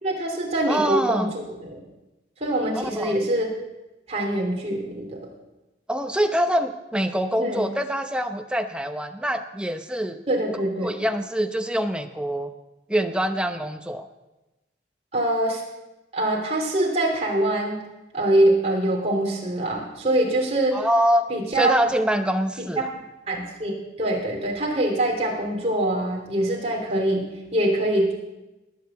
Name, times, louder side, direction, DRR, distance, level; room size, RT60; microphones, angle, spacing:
voice 1, 0.0-1.8 2.4-3.5 4.1-5.2 7.4-7.7 10.3-10.9 15.1-15.6 16.1-17.8 18.1-20.8 21.3-21.8 22.6-22.7 23.3-28.1, right 1 dB, 35° right, -1 dB, 3.5 m, -24 dB
voice 2, 0.7-1.3 2.7-3.2 5.9-10.2 10.8-12.5 12.9-14.1 20.7-22.9, equal, 5° right, 6 dB, 0.7 m, -25 dB
19.5 x 6.8 x 8.1 m, 1.0 s
head